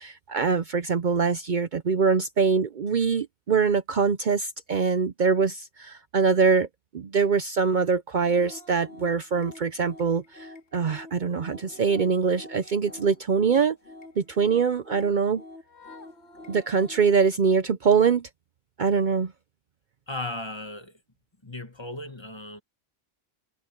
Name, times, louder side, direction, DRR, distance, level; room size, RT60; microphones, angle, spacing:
voice 1, 0.0-6.7 6.9-13.8 14.2-15.4 16.5-18.3 18.8-19.3, right 5 dB, 50° right, 0.8 m, -23 dB
sound 1, 8.3-17.2, left 2 dB, 85° left, 2.3 m, -47 dB
voice 2, 20.1-21.0 21.4-22.6, left 2 dB, 25° left, 1.5 m, -36 dB
omnidirectional pair, 1.1 m